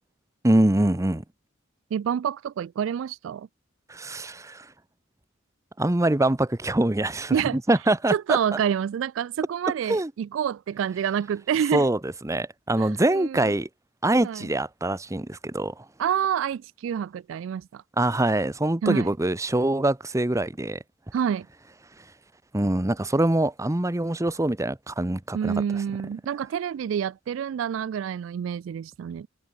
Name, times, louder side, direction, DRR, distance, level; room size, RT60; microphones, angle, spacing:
voice 1, 0.4-1.2 3.9-4.6 5.8-8.4 9.9-10.1 11.7-13.7 14.0-15.7 18.0-20.8 22.5-25.6, right 1 dB, 15° right, 0.8 m, -24 dB
voice 2, 1.9-3.5 7.3-7.6 8.1-11.9 12.8-13.5 14.2-14.5 16.0-17.8 18.8-19.1 21.1-21.5 25.3-29.3, right 8 dB, 75° right, 0.3 m, -28 dB
head